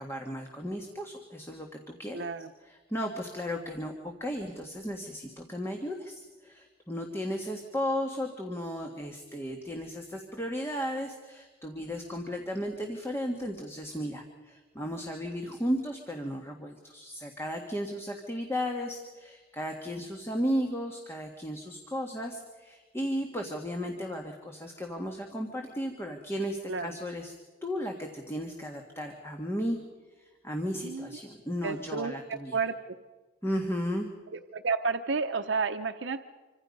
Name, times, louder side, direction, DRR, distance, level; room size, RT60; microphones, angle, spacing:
voice 1, 0.0-2.3 2.6-27.3 27.6-29.8 30.2-32.6 33.4-34.1, equal, 15° left, 2 dB, 1.7 m, -35 dB
voice 2, 2.1-2.5 26.7-26.9 30.8-31.1 31.6-32.7 34.3-36.2, right 4 dB, 70° right, 7 dB, 0.8 m, -31 dB
27.0 x 25.0 x 5.4 m, 1.3 s
head